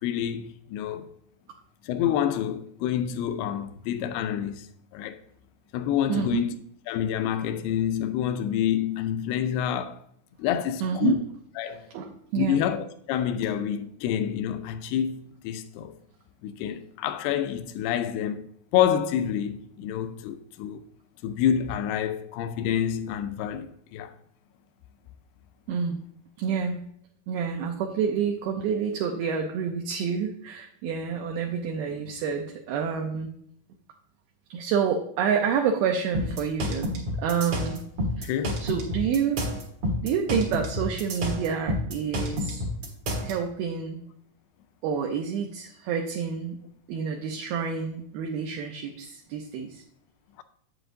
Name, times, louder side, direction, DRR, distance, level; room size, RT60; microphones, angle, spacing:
voice 1, 0.0-1.1 1.8-4.7 4.9-5.2 5.7-6.5 6.9-10.0 10.4-11.2 11.6-11.9 12.4-15.9 16.4-18.5 18.7-20.8 21.2-24.2 38.2-38.6, left 9 dB, 85° left, 2.5 m, -28 dB
voice 2, 6.1-6.4 10.8-11.2 11.9-12.6 25.7-26.0 26.4-26.8 27.3-33.3 34.5-37.8 38.2-39.4 40.0-42.6 43.2-44.0 44.8-46.6 46.9-49.8, right 7 dB, 80° right, 2.4 m, -28 dB
sound 1, 36.1-43.3, left 1 dB, 55° right, 1.8 m, -29 dB
8.0 x 7.8 x 2.6 m
omnidirectional pair, 4.7 m